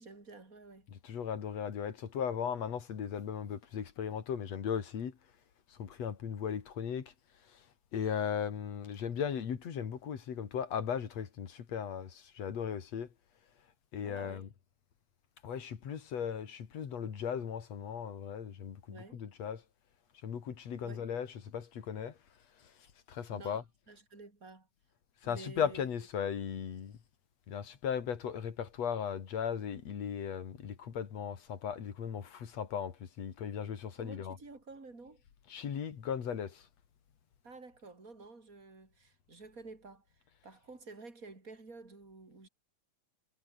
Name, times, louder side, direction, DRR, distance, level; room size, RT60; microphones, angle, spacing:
voice 1, 0.0-0.9 14.0-14.5 18.9-19.2 20.8-21.1 23.3-24.7 25.2-25.8 33.9-35.2 37.4-42.5, right 3 dB, 25° right, 5.6 m, -51 dB
voice 2, 0.9-5.1 5.8-7.1 7.9-13.1 13.9-14.5 15.4-19.6 20.2-22.1 23.1-23.6 25.2-26.9 27.5-34.4 35.5-36.6, left 7 dB, 60° left, 3.4 m, -37 dB
omnidirectional pair, 3.5 m